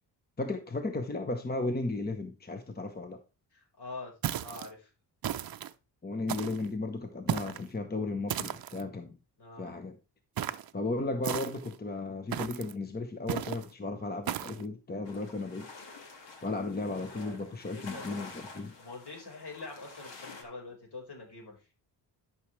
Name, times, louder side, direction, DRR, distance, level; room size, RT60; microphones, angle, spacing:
voice 1, 0.4-3.2 6.0-9.2 9.6-10.0 10.7-15.7 16.4-18.7, left 2 dB, 20° left, 6 dB, 0.9 m, -35 dB
voice 2, 3.5-4.1 4.4-4.9 9.4-9.7 17.0-17.4 17.7-18.0 18.8-21.6, left 3 dB, 60° left, 0 dB, 4.6 m, -45 dB
sound 1, 4.2-4.7 5.2-5.7 6.3-6.7 7.3-7.7 8.3-8.8 10.4-10.7 11.2-11.8 12.3-12.7 13.3-13.7 14.3-14.6, right 10 dB, 55° right, 0.7 m, -35 dB
sound 2, 15.0-20.4, left 4 dB, 75° left, 2.0 m, -49 dB
12.0 x 6.1 x 3.2 m, 0.30 s
cardioid pair, 110°, 43 cm